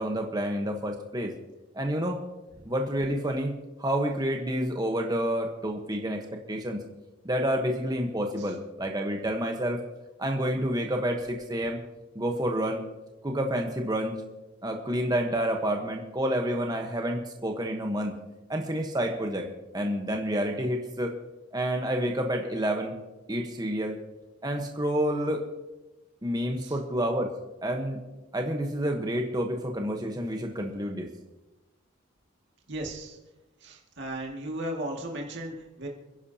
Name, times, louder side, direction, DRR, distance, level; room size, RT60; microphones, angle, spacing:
voice 1, 0.0-1.3 1.7-2.2 2.6-3.5 3.8-6.8 7.2-9.8 10.2-11.8 12.1-12.8 13.2-14.2 14.6-18.1 18.5-19.5 19.7-21.1 21.5-23.0 23.3-24.0 24.4-25.4 26.2-27.3 27.6-28.0 28.3-31.1, equal, 20° right, 2 dB, 1.2 m, -29 dB
voice 2, 32.7-33.2 33.6-35.9, right 1 dB, 60° right, 0 dB, 2.2 m, -35 dB
29.5 x 10.5 x 2.9 m, 1.1 s
head